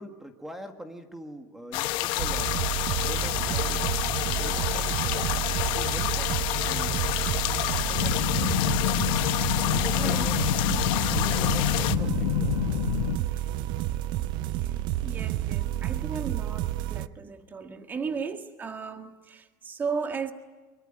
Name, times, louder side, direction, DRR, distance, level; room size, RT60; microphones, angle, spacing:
voice 1, 0.0-2.6 3.0-3.8 4.2-5.4 5.7-6.3 6.6-7.1 7.7-8.7 9.6-10.4 10.9-12.7 18.0-18.2, equal, 5° right, 1.8 m, -43 dB
sound 1, 1.7-12.0, left 17 dB, 50° left, 1.0 m, -29 dB
sound 2, 2.2-17.1, right 13 dB, 45° right, 0.8 m, -30 dB
sound 3, 8.0-13.2, left 15 dB, 80° left, 0.8 m, -28 dB
voice 2, 10.0-10.3 10.7-11.0 13.2-13.5 14.6-14.7 15.0-20.3, right 5 dB, 20° right, 1.7 m, -35 dB
24.5 x 23.5 x 8.9 m
supercardioid pair, 150°, 10 cm